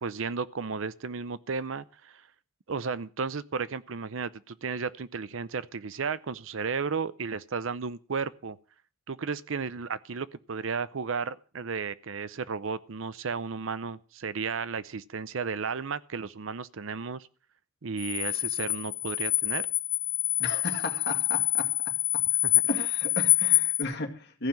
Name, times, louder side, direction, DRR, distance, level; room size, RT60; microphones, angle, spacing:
voice 1, 0.0-2.2 2.7-8.6 9.1-17.3 17.8-19.7 22.4-22.5, right 5 dB, 65° right, 0.6 m, -33 dB
sound 1, 18.0-23.8, left 15 dB, 70° left, 2.3 m, -26 dB
voice 2, 20.4-21.7 22.7-24.5, left 2 dB, 50° left, 2.1 m, -34 dB
14.5 x 5.7 x 8.8 m
head